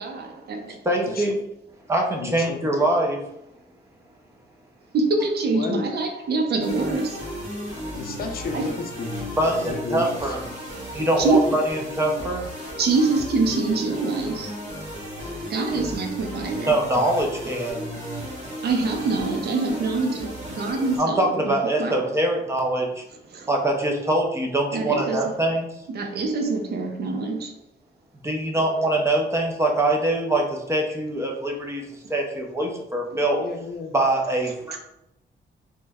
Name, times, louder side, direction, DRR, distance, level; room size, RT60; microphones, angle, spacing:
voice 1, 0.0-1.2 4.9-7.3 8.5-8.7 10.9-11.6 12.8-14.5 15.5-16.8 18.6-22.1 23.3-23.5 24.7-25.2 25.9-27.5 34.7-34.8, right 3 dB, 60° right, 0.5 m, -25 dB
voice 2, 0.9-1.4 1.9-3.2 9.4-10.4 10.9-12.4 16.7-17.8 21.0-23.0 23.5-25.7 28.2-31.8 32.1-33.4 33.9-34.8, right 1 dB, 15° right, 0.5 m, -23 dB
voice 3, 2.2-2.6 5.5-5.8 7.9-10.3 33.4-33.9, left 4 dB, 55° left, 0.4 m, -33 dB
sound 1, 6.6-21.0, equal, 40° right, 1.2 m, -35 dB
3.0 x 2.1 x 3.4 m
wide cardioid pair, 155°, 19 cm